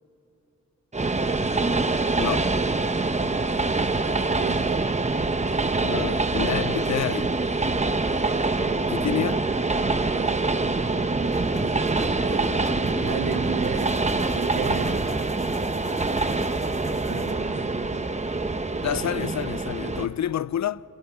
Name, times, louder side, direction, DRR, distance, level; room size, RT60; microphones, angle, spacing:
Train, 0.9-20.1, right 3 dB, 20° right, 0.8 m, -25 dB
voice 1, 2.1-2.5 5.8-7.3 8.9-9.4 18.8-20.8, left 10 dB, 60° left, 0.4 m, -28 dB
voice 2, 4.1-5.0 10.1-10.5 12.2-12.5 12.8-15.1 17.0-18.1, right 7 dB, 80° right, 0.9 m, -35 dB
sound 1, 11.2-17.3, equal, 10° left, 2.0 m, -38 dB
28.5 x 17.5 x 5.6 m
wide cardioid pair, 80°, 31 cm